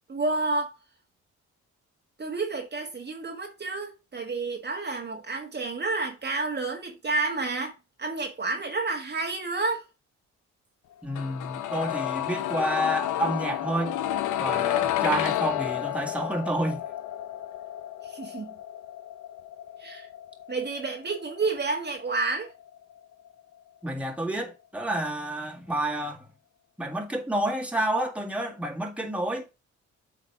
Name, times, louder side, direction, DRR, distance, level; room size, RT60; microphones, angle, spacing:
voice 1, 0.1-0.7 2.2-7.7 8.0-9.8 18.0-18.5 19.8-20.1 20.5-22.5, right 3 dB, 35° right, 1.6 m, -30 dB
voice 2, 11.0-14.0 14.4-16.8 23.8-26.3 26.8-29.5, right 1 dB, 5° right, 1.8 m, -29 dB
sound 1, 11.1-23.0 23.3-23.4, left 12 dB, 75° left, 0.7 m, -31 dB
8.0 x 4.1 x 4.7 m
cardioid pair, 90°, 30 cm